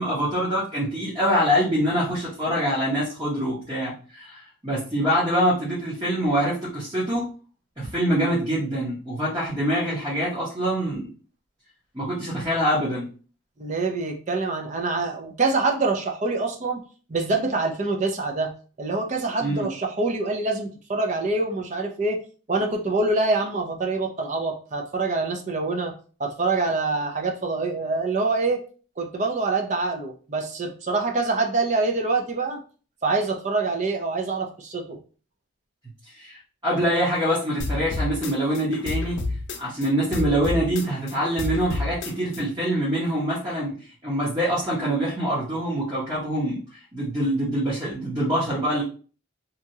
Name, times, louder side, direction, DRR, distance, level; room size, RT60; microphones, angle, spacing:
voice 1, 0.0-7.2 7.8-11.1 11.9-13.1 19.4-19.7 36.1-39.2 39.6-43.8 44.0-46.6 46.9-48.8, equal, 20° right, -8 dB, 0.9 m, -25 dB
voice 2, 13.6-16.8 17.1-18.5 18.8-22.2 22.5-25.9 26.2-28.6 29.0-32.6 33.0-35.0, right 3 dB, 35° right, 3 dB, 0.5 m, -25 dB
sound 1, 37.6-39.9 40.1-42.4, left 2 dB, 65° left, 0.5 m, -29 dB
2.8 x 2.3 x 2.7 m, 0.39 s
head